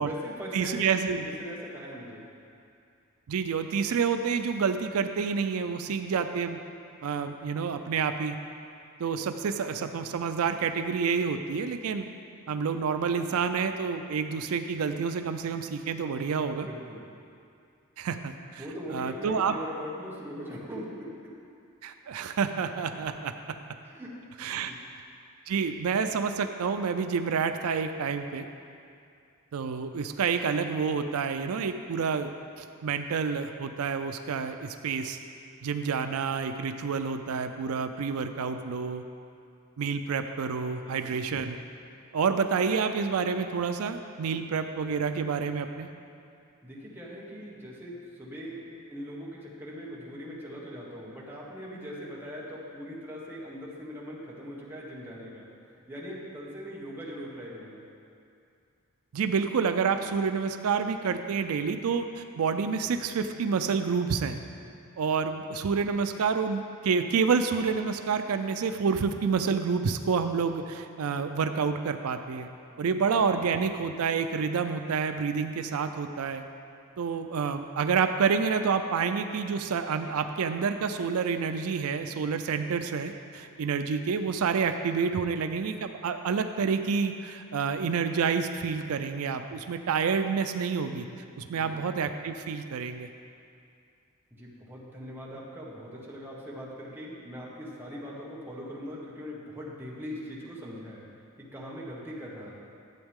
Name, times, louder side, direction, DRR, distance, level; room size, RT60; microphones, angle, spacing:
voice 1, 0.0-0.9 1.4-2.3 16.6-17.0 18.6-21.1 23.8-24.1 24.6-24.8 40.7-41.1 46.6-48.6 48.9-55.5 55.9-57.8 72.7-73.1 91.4-91.8 94.3-101.0 101.4-102.5, equal, 10° right, -5 dB, 1.5 m, -41 dB
voice 2, 0.5-1.3 3.3-6.6 7.0-8.4 9.0-12.1 12.5-16.7 18.0-18.6 18.9-19.5 21.8-23.3 24.4-24.7 25.5-28.5 29.5-35.2 35.6-39.0 39.8-41.6 42.1-45.9 59.1-64.4 65.0-72.5 72.8-76.4 77.0-91.1 91.4-93.1, right 5 dB, 90° right, 8 dB, 0.4 m, -28 dB
12.0 x 8.0 x 3.6 m, 2.4 s
head